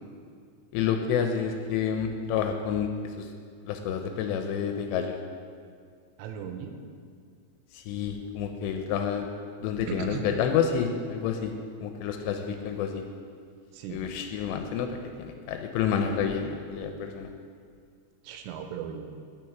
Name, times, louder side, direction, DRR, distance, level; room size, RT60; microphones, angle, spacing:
voice 1, 0.7-2.9 3.2-3.3 3.7-5.2 7.7-9.3 9.6-11.5 11.8-13.0 13.9-17.3, left 7 dB, 85° left, 5 dB, 2.8 m, -29 dB
voice 2, 6.2-6.8 9.9-10.2 13.7-14.0 18.2-19.2, right 8 dB, 90° right, 5 dB, 3.0 m, -37 dB
16.0 x 6.0 x 4.6 m, 2.2 s
omnidirectional pair, 5.1 m